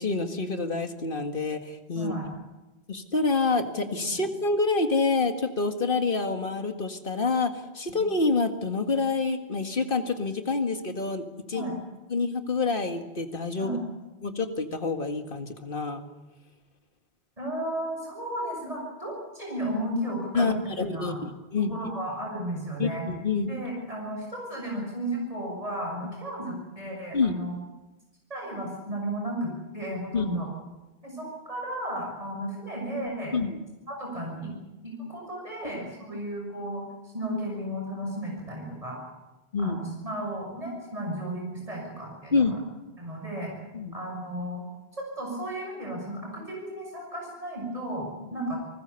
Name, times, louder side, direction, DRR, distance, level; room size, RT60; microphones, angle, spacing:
voice 1, 0.0-2.2 2.9-11.6 12.1-13.8 14.2-16.0 20.3-21.8 22.8-23.5 26.0-26.1 27.1-27.4 30.1-30.4 33.3-33.6 39.5-39.8 42.3-42.6 43.7-43.9, left 4 dB, 60° left, 6 dB, 2.1 m, -27 dB
voice 2, 1.9-2.3 4.0-4.2 7.9-8.0 11.5-11.8 13.6-13.8 17.4-21.2 21.6-23.0 23.4-27.6 28.3-30.5 31.0-33.3 33.9-34.5 34.8-36.8 37.1-39.0 39.6-42.5 43.0-43.5 43.9-44.6 44.9-48.6, right 1 dB, 35° right, -1 dB, 6.7 m, -34 dB
29.0 x 20.0 x 7.0 m, 1.1 s
omnidirectional pair, 1.0 m